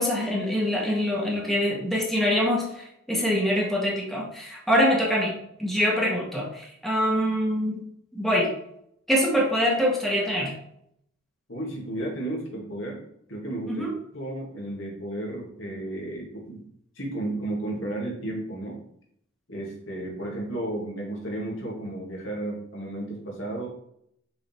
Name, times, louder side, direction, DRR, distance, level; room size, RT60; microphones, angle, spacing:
voice 1, 0.0-5.3 5.6-7.8 8.1-8.5 9.1-10.5 13.7-13.9, equal, ahead, -4 dB, 1.4 m, -24 dB
voice 2, 11.5-13.0 13.3-13.8 14.1-16.6 17.0-18.8 19.5-23.7, right 1 dB, 80° left, -2 dB, 2.2 m, -33 dB
6.8 x 4.0 x 4.5 m, 0.71 s
head